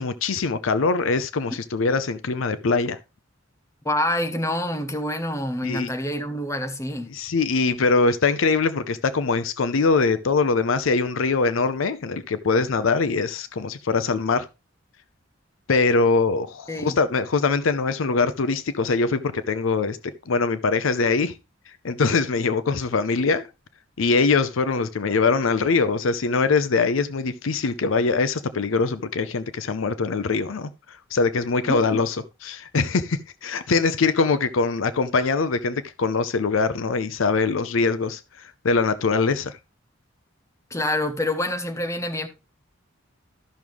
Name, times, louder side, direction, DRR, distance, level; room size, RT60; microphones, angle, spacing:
voice 1, 0.0-3.0 5.6-5.9 7.1-14.5 15.7-20.0 20.3-21.4 21.8-23.5 24.0-30.7 31.1-32.2 32.4-39.6, left 4 dB, 75° left, 0.6 m, -22 dB
voice 2, 3.8-7.1 16.7-17.0 31.7-32.0 40.7-42.3, left 1 dB, 15° left, 1.1 m, -27 dB
12.5 x 6.1 x 3.4 m
head